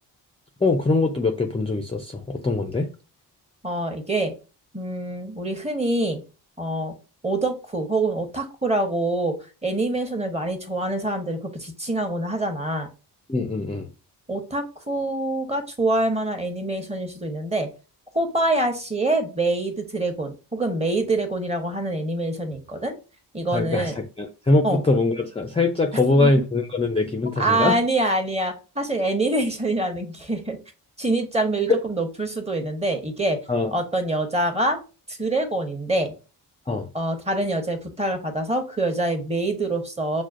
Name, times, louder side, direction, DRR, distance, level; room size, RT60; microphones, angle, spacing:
voice 1, 0.6-2.9 13.3-13.9 23.5-27.8 31.7-31.8 33.5-33.7 36.7-36.9, left 3 dB, 15° left, 0.5 m, -22 dB
voice 2, 3.6-4.3 4.7-6.2 6.6-6.9 7.2-9.4 9.6-12.9 14.3-17.7 18.1-22.9 23.3-23.9 24.6-24.8 26.1-26.3 27.4-30.6 31.0-33.4 33.7-34.8 35.1-36.1 36.9-40.2, right 2 dB, 15° right, 1.0 m, -25 dB
6.0 x 2.1 x 2.5 m
cardioid pair, 60°, 42 cm